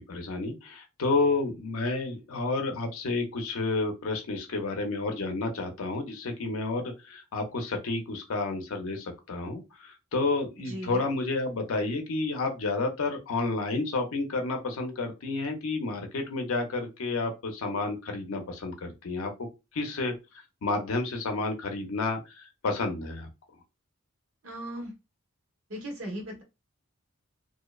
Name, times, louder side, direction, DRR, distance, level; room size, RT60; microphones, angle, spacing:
voice 1, 0.0-19.5 19.7-23.3, left 3 dB, 80° left, 4 dB, 0.5 m, -30 dB
voice 2, 10.7-11.0 24.4-24.9 25.7-26.4, right 1 dB, 70° right, 1 dB, 1.0 m, -37 dB
2.7 x 2.0 x 2.2 m, 0.25 s
head